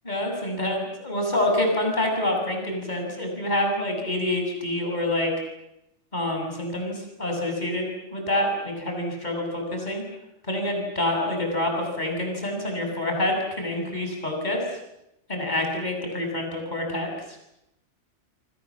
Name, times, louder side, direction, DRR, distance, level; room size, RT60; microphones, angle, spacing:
voice 1, 0.0-5.3 6.1-10.0 10.4-14.8 15.3-17.1, left 1 dB, 35° left, 2 dB, 7.1 m, -27 dB
28.5 x 24.0 x 7.4 m, 0.87 s
omnidirectional pair, 1.3 m